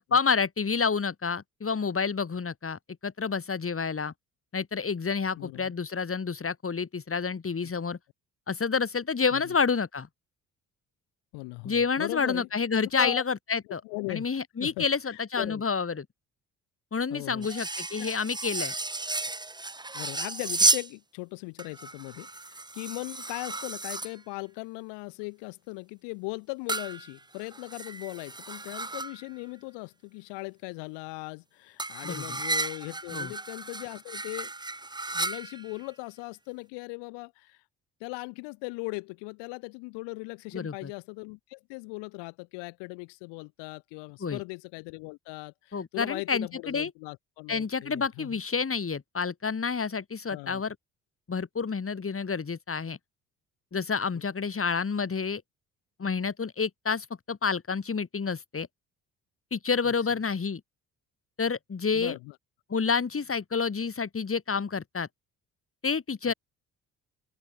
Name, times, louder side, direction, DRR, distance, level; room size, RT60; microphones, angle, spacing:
voice 1, 0.0-4.1 4.5-8.0 8.5-10.1 11.6-13.8 14.1-16.1 16.9-18.7 32.0-32.4 33.1-33.3 40.5-40.9 44.2-44.4 45.7-46.9 47.5-50.8 51.3-53.0 53.7-55.4 56.0-58.7 59.5-60.6 61.4-62.2 62.7-65.1 65.8-66.3, left 5 dB, 30° left, 3.5 m, -29 dB
voice 2, 5.4-5.7 9.3-9.4 11.3-12.5 13.0-13.2 13.8-14.3 14.6-15.6 17.1-18.2 19.9-34.5 35.1-37.6 38.0-48.4 50.3-50.6 54.1-54.2 59.8-59.9 61.9-62.4 66.3-66.4, left 29 dB, 75° left, 1.4 m, -39 dB
sound 1, 17.4-20.9 21.6-24.2 26.7-29.3 31.8-35.8, right 2 dB, 10° right, 1.0 m, -32 dB
open air
hypercardioid pair, 55°, 42 cm